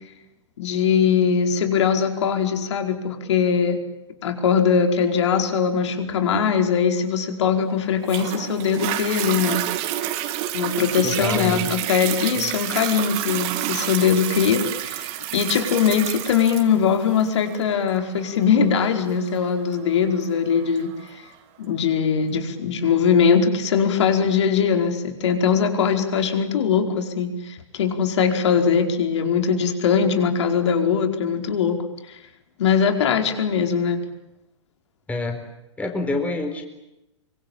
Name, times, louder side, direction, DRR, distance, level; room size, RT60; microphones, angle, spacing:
voice 1, 0.6-3.8 4.2-9.6 10.5-20.9 21.6-31.8 32.6-34.0, left 6 dB, 65° left, 5 dB, 4.9 m, -21 dB
Toilet flush, 8.1-21.1 21.7-21.8, right 13 dB, 40° right, 2.9 m, -29 dB
voice 2, 11.0-11.7 12.4-12.5 35.1-35.4 35.8-36.6, left 2 dB, 10° left, 4 dB, 4.4 m, -27 dB
25.0 x 25.0 x 8.9 m, 0.90 s
hypercardioid pair, 125°, 16 cm